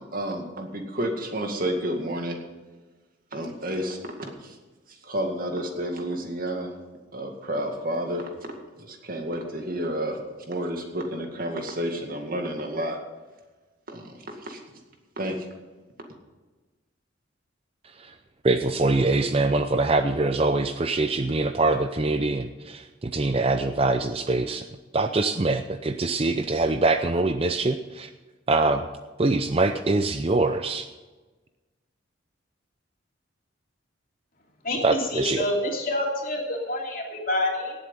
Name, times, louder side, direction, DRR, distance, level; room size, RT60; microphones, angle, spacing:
voice 1, 0.0-2.4 3.3-4.6 4.9-6.7 7.1-8.2 8.7-10.2 10.5-13.0 13.9-14.6 15.2-15.5, right 1 dB, 45° right, 3 dB, 2.1 m, -30 dB
voice 2, 18.4-22.8 23.1-24.6 24.9-28.1 28.5-28.8 29.2-30.9 34.8-35.4, right 3 dB, 30° right, 8 dB, 0.5 m, -23 dB
voice 3, 34.6-37.7, left 1 dB, 45° left, 0 dB, 3.0 m, -27 dB
18.0 x 8.0 x 5.4 m, 1.2 s
head